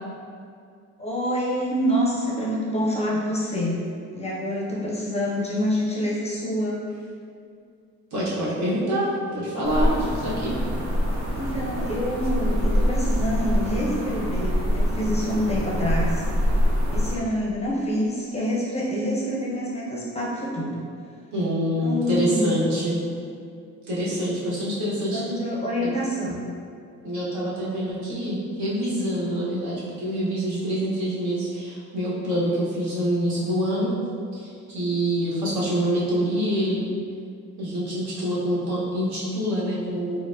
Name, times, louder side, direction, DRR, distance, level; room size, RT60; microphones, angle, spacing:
voice 1, 1.0-3.8 4.1-6.9 9.7-9.9 11.3-16.2 16.9-20.8 21.8-22.6 25.1-26.5, equal, 20° left, -5 dB, 0.6 m, -27 dB
voice 2, 8.1-10.5 21.3-23.0 23.9-25.2 25.8-25.9 27.0-33.9 34.3-36.8 37.6-40.2, equal, 60° right, -8 dB, 1.2 m, -26 dB
sound 1, 9.6-17.1, equal, 45° right, 0.9 m, -24 dB
4.2 x 2.0 x 2.6 m, 2.4 s
cardioid pair, 95°, 32 cm